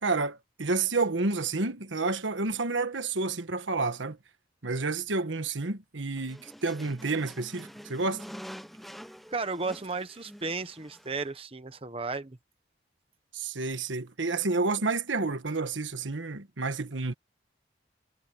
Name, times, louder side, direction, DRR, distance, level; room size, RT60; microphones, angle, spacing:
voice 1, 0.0-4.2 4.6-8.2 13.3-17.1, right 3 dB, 85° right, 1.4 m, -30 dB
sound 1, 6.2-11.3, equal, ahead, 0.7 m, -46 dB
voice 2, 9.3-12.4, right 3 dB, 30° right, 1.0 m, -34 dB
head